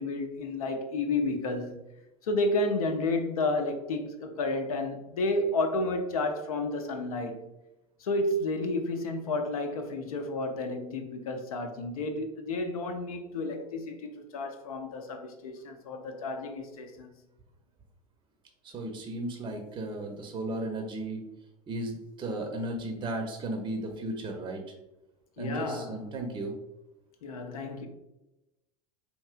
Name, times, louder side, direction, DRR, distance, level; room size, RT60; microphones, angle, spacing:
voice 1, 0.0-1.8 2.2-7.5 8.0-17.2 25.4-26.0 27.2-27.9, left 2 dB, 70° left, 0.6 m, -31 dB
voice 2, 18.6-21.2 21.7-24.6 25.4-26.5, right 1 dB, 25° right, 0.6 m, -35 dB
4.5 x 2.9 x 2.4 m
figure-of-eight pair, 75°, 19 cm